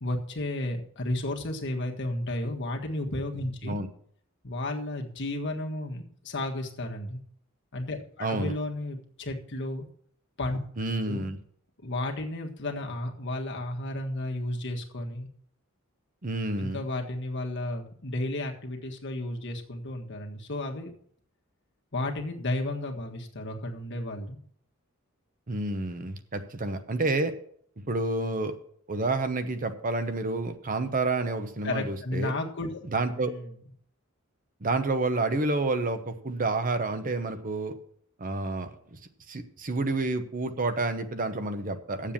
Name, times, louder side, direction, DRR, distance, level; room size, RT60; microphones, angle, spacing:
voice 1, 0.0-3.8 4.4-7.2 7.7-9.9 10.4-10.6 11.1-11.3 11.8-15.3 16.6-20.9 21.9-24.4 31.6-32.8 33.2-33.5, left 1 dB, 60° left, 1 dB, 1.6 m, -33 dB
voice 2, 8.2-8.5 10.8-11.4 16.2-16.8 25.5-27.3 27.9-28.6 28.9-32.3 32.9-33.3 34.6-37.7 38.2-39.0 39.3-42.1, right 2 dB, 40° right, 9 dB, 0.9 m, -29 dB
8.9 x 7.5 x 7.2 m, 0.62 s
head